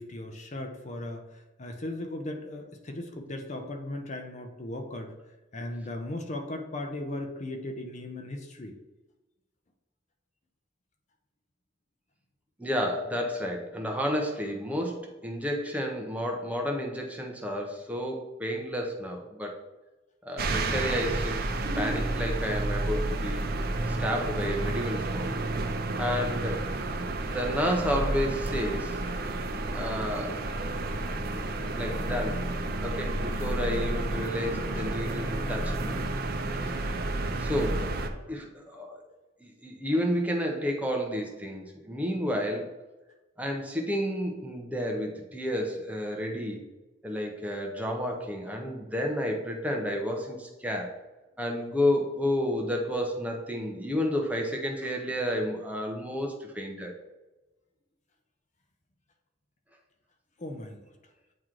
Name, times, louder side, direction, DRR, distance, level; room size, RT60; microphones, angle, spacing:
voice 1, 0.0-5.1 5.5-8.8 60.4-60.9, left 1 dB, 35° left, 4 dB, 0.6 m, -37 dB
voice 2, 12.6-19.6 20.2-21.5 21.8-23.5 23.9-25.3 26.0-26.7 27.2-29.0 29.7-30.4 31.3-31.4 31.7-32.5 32.8-36.0 36.8-36.9 37.4-37.9 38.3-39.0 39.4-42.7 43.4-46.6 47.0-51.0 51.4-56.9, equal, 10° right, 1 dB, 0.7 m, -31 dB
sound 1, 20.4-38.1, right 2 dB, 50° right, 0.6 m, -31 dB
8.9 x 3.1 x 3.7 m, 1.1 s
head